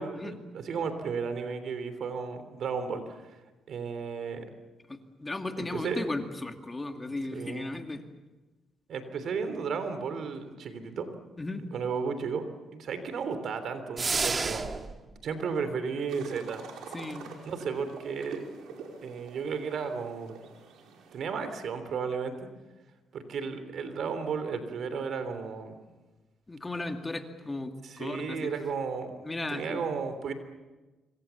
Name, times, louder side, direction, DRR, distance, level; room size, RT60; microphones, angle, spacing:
voice 1, 0.0-3.2 3.7-4.4 5.6-6.0 7.3-7.7 8.9-11.1 11.6-12.5 12.7-14.7 15.2-16.7 17.4-18.4 19.0-20.4 21.1-22.3 23.1-25.8 27.8-30.3, right 5 dB, 65° right, 10 dB, 3.3 m, -34 dB
voice 2, 4.9-8.0 11.4-11.7 16.9-17.4 26.5-28.4 29.2-29.8, left 2 dB, 20° left, 5 dB, 2.3 m, -36 dB
sound 1, 14.0-15.0, right 4 dB, 30° right, 1.7 m, -29 dB
sound 2, 16.1-21.2, right 5 dB, 80° right, 5.0 m, -45 dB
26.0 x 25.0 x 7.1 m, 1.2 s
cardioid pair, 90°, 0 cm